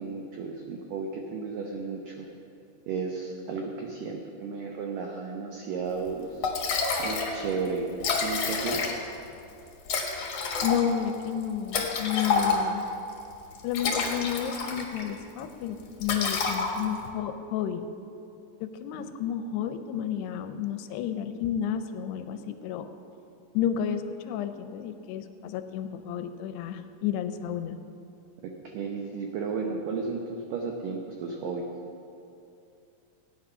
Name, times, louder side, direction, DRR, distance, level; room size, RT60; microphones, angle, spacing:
voice 1, 0.0-2.3 2.9-6.5 7.0-7.9 8.2-8.9 18.9-19.1 28.4-31.7, right 4 dB, 85° right, 1 dB, 1.9 m, -33 dB
Liquid, 6.1-6.2 6.4-7.4 7.6-7.7 7.9-9.2 9.9-12.9 13.5-15.1 15.4-15.6 16.0-17.1, left 4 dB, 60° left, 1.7 m, -28 dB
voice 2, 10.6-12.9 13.6-17.9 18.6-22.9 23.5-27.8, left 9 dB, 80° left, 9 dB, 2.6 m, -31 dB
17.0 x 9.5 x 5.6 m, 2.7 s
omnidirectional pair, 5.2 m